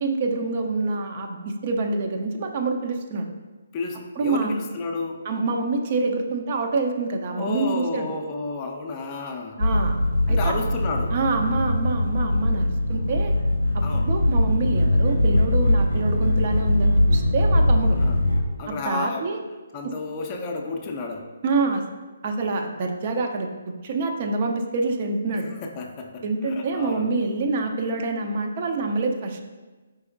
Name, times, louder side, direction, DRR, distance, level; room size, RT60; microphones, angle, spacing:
voice 1, 0.0-3.3 4.2-4.6 5.3-8.1 9.6-9.9 10.3-10.5 11.1-13.3 13.7-18.0 18.7-19.4 21.4-21.8 22.2-25.5 26.2-29.4, right 3 dB, 40° right, 4 dB, 0.5 m, -26 dB
voice 2, 3.7-5.3 7.4-9.6 10.3-11.2 13.8-14.2 17.9-19.3 19.7-21.3 25.3-27.1, left 3 dB, 30° left, 2 dB, 0.4 m, -32 dB
sound 1, 9.6-18.4, left 1 dB, 90° right, 0.7 m, -21 dB
4.8 x 3.9 x 2.5 m, 1.2 s
figure-of-eight pair, 140°, 0 cm